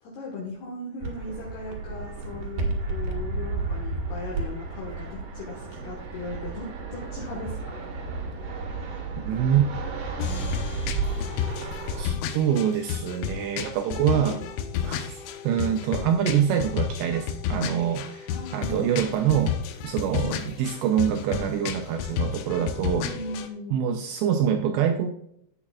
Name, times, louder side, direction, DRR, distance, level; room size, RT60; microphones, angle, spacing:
voice 1, 0.0-7.9 13.7-15.1 18.3-19.2 20.1-20.6 23.0-23.8, left 1 dB, 65° left, -2 dB, 3.0 m, -38 dB
Fixed-wing aircraft airplane, 1.0-12.0, right 3 dB, 60° right, 2.4 m, -32 dB
voice 2, 9.3-9.7 12.0-14.4 14.8-15.2 15.4-19.6 19.8-23.1 23.7-25.1, right 9 dB, 85° right, 5 dB, 2.4 m, -25 dB
sound 1, 10.2-23.5, left 8 dB, 80° left, 3.1 m, -32 dB
11.0 x 8.7 x 2.4 m, 0.73 s
omnidirectional pair, 5.5 m